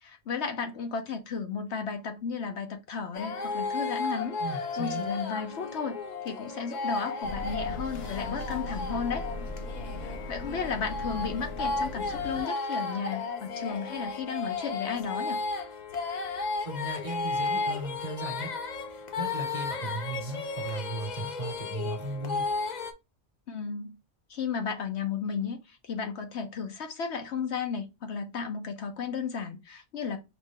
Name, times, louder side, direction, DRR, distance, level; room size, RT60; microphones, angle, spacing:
voice 1, 0.0-6.0 6.2-9.3 10.0-15.4 23.5-24.0 24.3-30.2, left 6 dB, 65° left, 1.0 m, -34 dB
sound 1, 3.1-22.9, left 4 dB, 50° left, 0.6 m, -34 dB
voice 2, 4.4-5.0 16.6-18.5 19.2-22.5, right 2 dB, 35° right, 1.2 m, -36 dB
Riding the light rail train St Louis MO, 7.2-12.4, left 2 dB, 85° left, 1.3 m, -38 dB
4.9 x 2.5 x 3.6 m
omnidirectional pair, 1.3 m